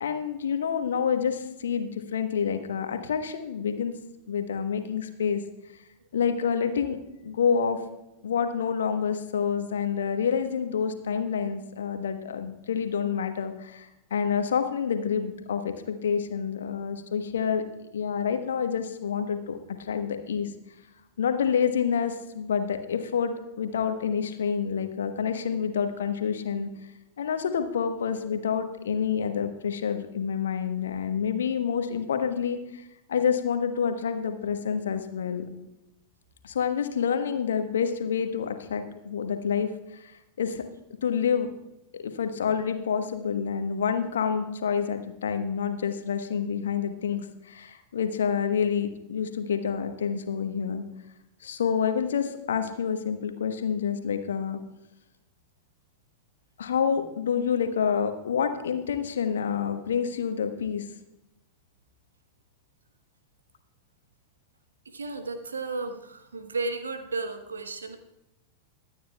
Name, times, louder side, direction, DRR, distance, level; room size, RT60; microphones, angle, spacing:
voice 1, 0.0-4.0 4.3-5.4 6.1-7.8 8.2-17.6 17.9-20.5 21.2-26.7 27.2-35.4 36.4-40.1 40.4-40.6 41.0-41.5 42.0-50.8 51.4-54.6 56.6-60.9, left 7 dB, 65° left, 8 dB, 1.2 m, -28 dB
voice 2, 64.9-68.0, right 3 dB, 75° right, 8 dB, 1.2 m, -33 dB
23.5 x 9.4 x 2.3 m, 0.92 s
figure-of-eight pair, 90°, 0 cm